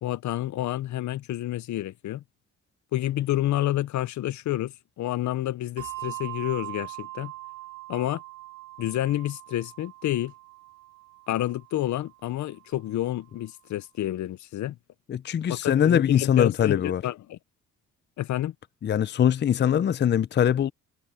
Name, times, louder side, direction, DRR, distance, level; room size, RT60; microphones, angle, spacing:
voice 1, 0.0-2.2 2.9-7.3 7.9-8.2 8.8-10.3 11.3-14.8 15.5-17.4 18.2-18.5, left 14 dB, 70° left, 0.8 m, -29 dB
Bell, 5.8-12.6, right 19 dB, 90° right, 3.0 m, -42 dB
voice 2, 15.1-17.0 18.8-20.7, left 9 dB, 35° left, 0.5 m, -22 dB
cardioid pair, 90°, 30 cm